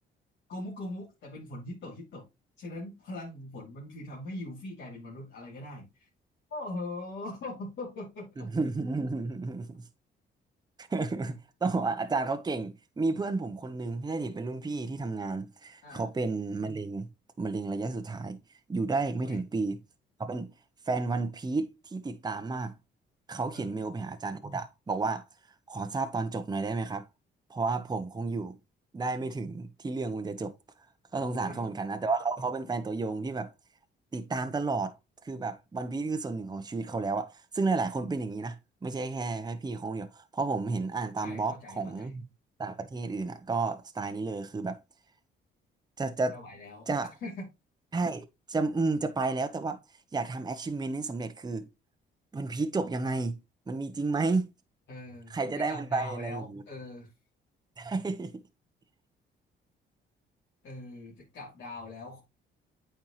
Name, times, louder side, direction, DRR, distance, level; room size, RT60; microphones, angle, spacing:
voice 1, 0.5-2.3 2.6-6.1 6.5-8.5 15.8-16.1 19.1-19.4 23.5-23.8 31.2-31.6 41.2-42.1 46.3-46.9 47.2-47.4 54.9-57.1 60.6-62.2, left 2 dB, 65° left, 2.8 m, -41 dB
voice 2, 8.5-9.8 10.8-17.1 17.4-18.4 18.7-19.8 20.2-20.5 20.9-22.7 23.3-25.2 25.7-27.1 27.5-28.5 28.9-30.5 31.1-33.5 34.1-34.9 35.2-38.6 38.8-42.2 42.6-44.8 46.0-46.4 46.9-47.1 47.9-49.8 50.1-51.7 52.3-53.4 53.7-54.5 55.3-56.4 57.8-58.3, right 3 dB, 20° right, 0.8 m, -32 dB
8.8 x 4.6 x 3.1 m
cardioid pair, 90°, 20 cm